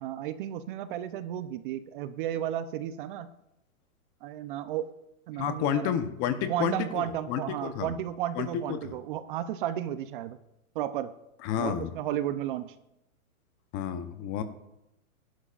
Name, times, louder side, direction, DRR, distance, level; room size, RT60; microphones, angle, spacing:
voice 1, 0.0-3.3 4.2-4.9 5.3-6.0 6.5-10.4 10.7-11.1 11.6-12.7, right 11 dB, 35° right, 12 dB, 0.7 m, -33 dB
voice 2, 5.4-7.9 8.3-8.8 11.4-11.9 13.7-14.4, left 9 dB, 25° left, 9 dB, 0.9 m, -30 dB
21.0 x 11.5 x 2.5 m, 0.87 s
hypercardioid pair, 140°, 43 cm